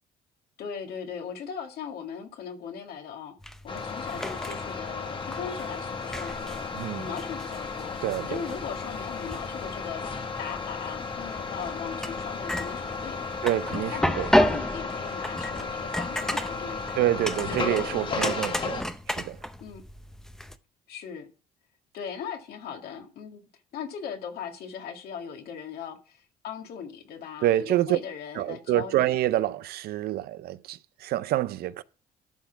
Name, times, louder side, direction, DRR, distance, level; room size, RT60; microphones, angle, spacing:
voice 1, 0.6-3.3 3.6-8.0 8.3-13.3 13.7-16.9 17.5-18.5 19.6-19.8 20.9-21.3 21.9-23.4 23.7-29.0, left 7 dB, 70° left, 2.1 m, -39 dB
sound 1, 3.4-20.6, left 1 dB, 5° left, 0.6 m, -33 dB
sound 2, 3.7-18.8, left 4 dB, 30° left, 1.2 m, -34 dB
voice 2, 8.0-8.4 13.4-14.3 17.0-18.8 19.1-19.4 27.4-28.0 28.4-31.8, right 14 dB, 65° right, 0.5 m, -27 dB
12.0 x 4.3 x 5.8 m
cardioid pair, 110°, 17 cm